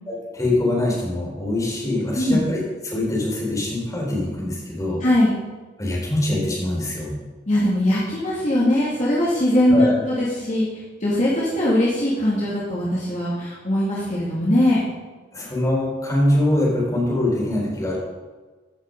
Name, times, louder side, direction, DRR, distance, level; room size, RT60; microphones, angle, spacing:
voice 1, 0.1-5.0 5.8-7.1 9.7-9.9 15.3-18.0, left 1 dB, 20° left, -4 dB, 3.6 m, -23 dB
voice 2, 5.0-5.3 7.5-14.8, left 1 dB, 45° left, -7 dB, 2.2 m, -20 dB
15.0 x 5.8 x 5.2 m, 1.3 s
head